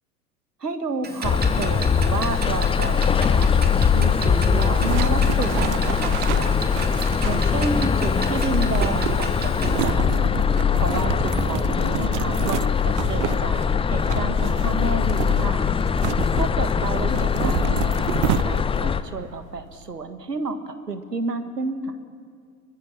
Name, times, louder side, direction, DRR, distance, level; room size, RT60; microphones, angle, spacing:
voice 1, 0.6-3.5 3.9-6.8 7.2-10.3 10.8-15.7 16.4-21.9, right 3 dB, 85° right, 9 dB, 1.8 m, -31 dB
Clock, 1.0-9.8, right 4 dB, 20° right, 2.8 m, -34 dB
sound 1, 1.2-19.0, left 6 dB, 10° left, 0.7 m, -21 dB
sound 2, 4.5-18.9, right 16 dB, 50° right, 0.6 m, -31 dB
24.5 x 22.5 x 7.4 m, 2.1 s
figure-of-eight pair, 85°, 47 cm